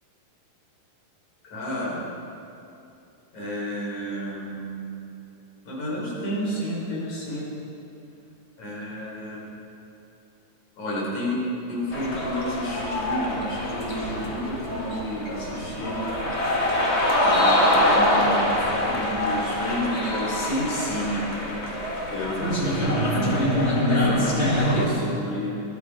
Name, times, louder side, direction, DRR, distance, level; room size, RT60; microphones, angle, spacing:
voice 1, 1.5-2.0 3.3-4.9 5.7-7.5 8.6-9.4 10.8-11.4 11.7-16.0 17.3-18.4 18.8-21.2 22.1-24.4 24.6-25.5, equal, 50° left, -5 dB, 5.6 m, -30 dB
sound 1, 11.9-24.9, left 1 dB, 65° left, 0.6 m, -24 dB
21.5 x 12.0 x 5.0 m, 2.7 s
omnidirectional pair, 4.4 m